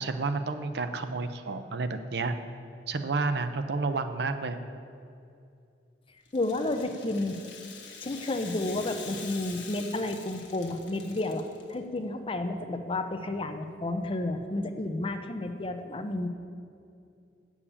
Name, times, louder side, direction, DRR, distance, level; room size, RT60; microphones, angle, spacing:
voice 1, 0.0-2.3 2.9-4.6, right 3 dB, 65° right, 9 dB, 0.6 m, -30 dB
Rattle (instrument), 6.3-11.7, left 6 dB, 90° left, 1.3 m, -45 dB
voice 2, 6.3-7.4 8.0-11.4 11.7-16.3, left 2 dB, 30° left, 6 dB, 0.7 m, -31 dB
8.5 x 7.2 x 7.1 m, 2.5 s
head